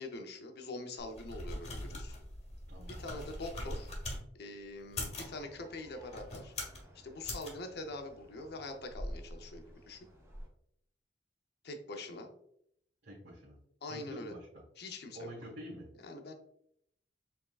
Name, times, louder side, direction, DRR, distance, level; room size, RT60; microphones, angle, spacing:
voice 1, 0.0-2.2 2.9-3.9 4.4-6.5 7.0-10.0 11.6-12.3 13.8-14.3 14.8-15.3 16.0-16.3, left 2 dB, 65° left, 5 dB, 0.7 m, -44 dB
sound 1, 1.0-4.2 4.8-5.4 6.0-6.8 7.2-7.5, left 1 dB, 35° left, 1.3 m, -41 dB
voice 2, 2.7-3.2 13.0-13.6 13.9-14.6 15.1-15.9, equal, 70° right, -8 dB, 1.4 m, -47 dB
sound 2, 5.1-10.5, equal, 15° right, 0.8 m, -50 dB
4.6 x 3.6 x 2.4 m, 0.73 s
head